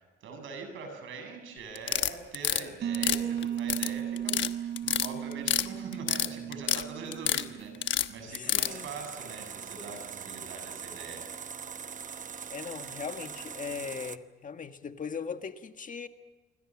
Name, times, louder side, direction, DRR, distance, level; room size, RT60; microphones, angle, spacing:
voice 1, 0.0-11.3, right 4 dB, 80° right, 7.3 m, -43 dB
sound 1, 1.8-2.6 2.9-3.9 4.2-4.5 4.8-5.7 5.9-6.8 7.1-7.4 7.8-8.7, left 11 dB, 70° left, 1.1 m, -27 dB
sound 2, 2.8-8.4, right 10 dB, 55° right, 0.7 m, -36 dB
voice 2, 8.3-8.9 12.5-16.1, left 6 dB, 40° left, 1.6 m, -39 dB
sound 3, 8.6-14.2, right 6 dB, 40° right, 1.0 m, -42 dB
27.5 x 24.0 x 6.2 m
cardioid pair, 90°, 20 cm